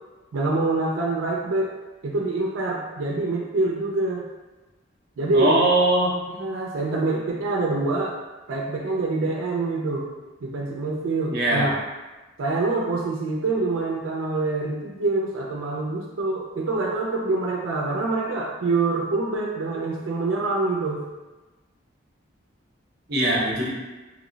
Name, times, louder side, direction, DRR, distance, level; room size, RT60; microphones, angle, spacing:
voice 1, 0.3-1.7 2.0-4.2 5.2-5.7 6.3-8.2 8.5-10.1 10.4-11.8 12.4-21.0, right 3 dB, 85° right, -2 dB, 0.4 m, -25 dB
voice 2, 5.3-6.1 11.3-11.7 23.1-23.7, right 1 dB, 50° right, -3 dB, 0.7 m, -20 dB
2.9 x 2.0 x 3.8 m, 1.2 s
head